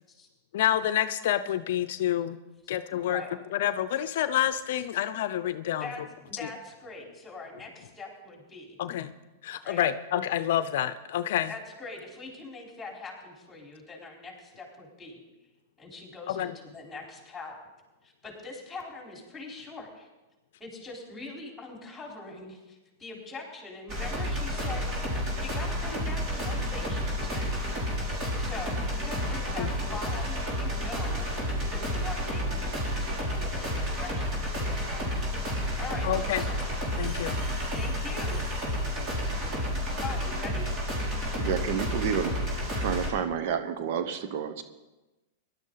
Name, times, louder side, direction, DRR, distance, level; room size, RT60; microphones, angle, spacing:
voice 1, 0.5-2.4 2.7-3.2 3.5-5.9 8.8-9.1 9.4-11.5 16.3-16.5 29.6-29.7 36.0-36.4 37.0-37.4, left 11 dB, 70° left, 13 dB, 0.5 m, -28 dB
voice 2, 2.9-3.3 5.8-6.0 6.3-8.8 9.6-9.9 11.5-15.2 15.8-17.5 18.0-20.1 20.6-27.6 28.0-31.3 31.7-32.8 33.3-34.8 35.8-36.6 37.7-38.5 38.9-39.0 40.0-40.8, left 3 dB, 10° left, -1 dB, 4.4 m, -42 dB
sound 1, 23.9-43.1, equal, 30° right, 5.1 m, -30 dB
voice 3, 41.4-42.3 42.7-44.6, right 8 dB, 60° right, 10 dB, 1.0 m, -30 dB
18.0 x 11.5 x 4.0 m, 1.1 s
hypercardioid pair, 125°, 0 cm